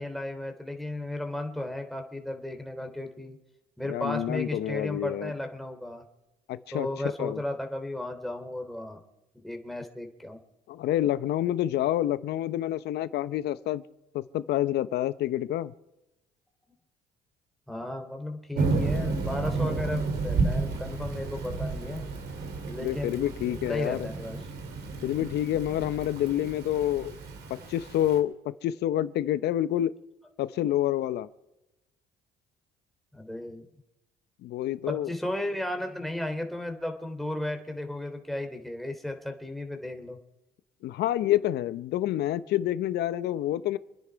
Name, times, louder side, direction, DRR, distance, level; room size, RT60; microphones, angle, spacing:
voice 1, 0.0-3.4 3.8-6.0 6.7-9.0 9.4-10.4 17.7-22.0 22.6-23.2 23.7-24.5 33.1-33.7 34.9-40.2, left 1 dB, ahead, 3.0 m, -34 dB
voice 2, 3.9-5.3 6.5-6.9 7.2-7.4 10.7-13.8 14.1-15.7 22.8-24.1 25.0-27.1 27.7-29.9 30.4-31.3 34.4-35.1 40.8-43.8, left 12 dB, 70° left, 0.8 m, -28 dB
Thunder / Rain, 18.5-28.2, right 3 dB, 70° right, 2.5 m, -32 dB
27.5 x 10.0 x 4.7 m
supercardioid pair, 70°, 17 cm